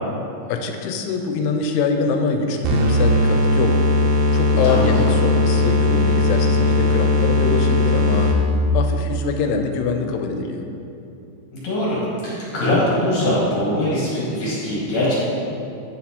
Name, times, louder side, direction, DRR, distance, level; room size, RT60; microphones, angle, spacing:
voice 1, 0.5-3.8 4.3-8.3 8.7-10.7, left 5 dB, 90° left, 5 dB, 2.6 m, -24 dB
sound 1, 2.6-8.6, left 1 dB, 75° right, 2.3 m, -18 dB
voice 2, 4.6-5.1 11.5-15.1, left 1 dB, 55° left, -7 dB, 2.3 m, -22 dB
9.4 x 4.3 x 4.2 m, 2.6 s
omnidirectional pair, 4.4 m